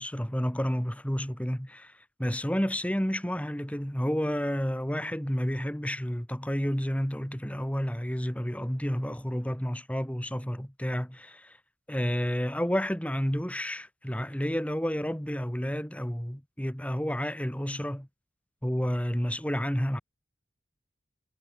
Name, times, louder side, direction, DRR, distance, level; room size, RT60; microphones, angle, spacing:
voice 1, 0.0-11.6 11.9-18.1 18.6-20.0, equal, 5° left, 2.5 m, -30 dB
head